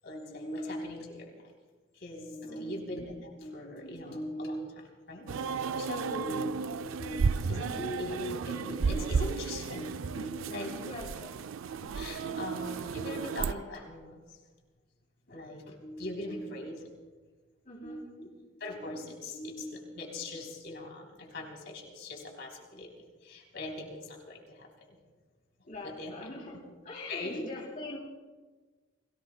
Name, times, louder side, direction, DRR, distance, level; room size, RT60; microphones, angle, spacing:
voice 1, 0.0-1.5 1.9-11.2 11.9-14.4 15.3-16.9 17.8-18.3 18.6-25.0 25.6-26.1 26.5-26.6 27.1-27.5, left 1 dB, 60° left, 0 dB, 3.4 m, -40 dB
voice 2, 2.4-2.8 10.8-11.3 13.0-13.1 17.6-18.0 25.6-26.6 26.8-28.0, left 2 dB, 40° left, -2 dB, 2.9 m, -43 dB
sound 1, 5.3-13.5, right 5 dB, 85° right, 0.4 m, -33 dB
29.5 x 18.5 x 2.2 m, 1.4 s
head